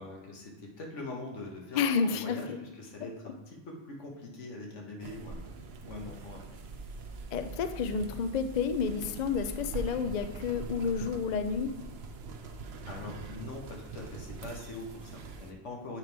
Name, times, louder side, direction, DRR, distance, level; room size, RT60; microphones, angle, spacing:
voice 1, 0.0-5.5 5.8-6.6 12.4-12.6 12.8-16.0, left 2 dB, 85° left, 0 dB, 1.5 m, -43 dB
voice 2, 1.7-2.6 7.3-11.7, left 6 dB, 60° left, 8 dB, 0.4 m, -30 dB
sound 1, 5.0-15.5, right 3 dB, 65° right, 0.9 m, -43 dB
7.8 x 3.6 x 4.7 m, 0.99 s
omnidirectional pair, 1.2 m